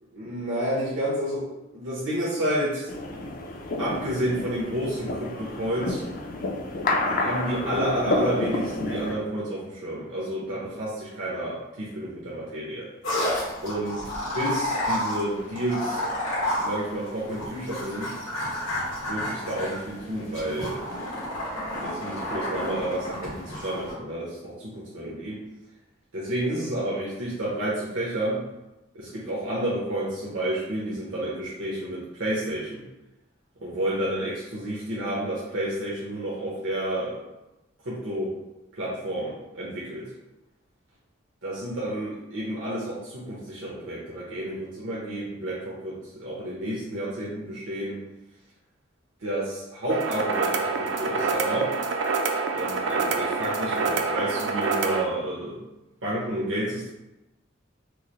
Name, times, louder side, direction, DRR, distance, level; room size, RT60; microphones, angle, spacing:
voice 1, 0.1-2.9 3.8-6.0 7.0-12.9 13.6-14.0 14.3-16.0 16.6-18.1 19.1-20.8 21.8-25.4 26.1-28.4 28.9-32.8 33.6-37.2 37.8-38.3 38.7-40.1 41.4-48.0 49.2-51.7 52.5-55.6 56.0-56.9, right 1 dB, 90° right, -7 dB, 0.9 m, -30 dB
sound 1, 2.9-9.1, left 2 dB, 45° left, 0.4 m, -29 dB
sound 2, 13.0-23.9, equal, 85° left, 1.4 m, -31 dB
sound 3, 49.9-55.0, right 4 dB, 65° right, 0.4 m, -26 dB
4.7 x 2.0 x 3.0 m, 0.98 s
head